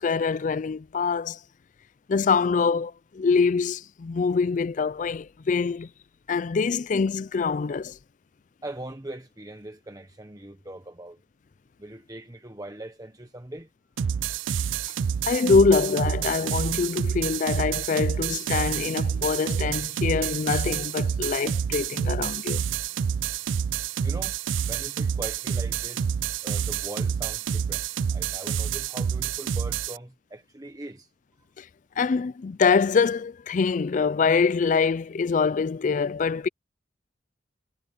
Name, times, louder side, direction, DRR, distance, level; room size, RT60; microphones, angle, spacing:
voice 1, 0.0-1.4 2.1-5.9 6.3-8.0 15.3-22.6 31.6-31.7 32.0-36.5, left 5 dB, 40° left, 0.4 m, -24 dB
voice 2, 8.6-11.2 11.8-13.7 24.0-24.4 24.7-26.1 26.4-31.1, right 1 dB, 20° right, 1.0 m, -41 dB
sound 1, 14.0-30.0, right 7 dB, 85° right, 0.4 m, -28 dB
head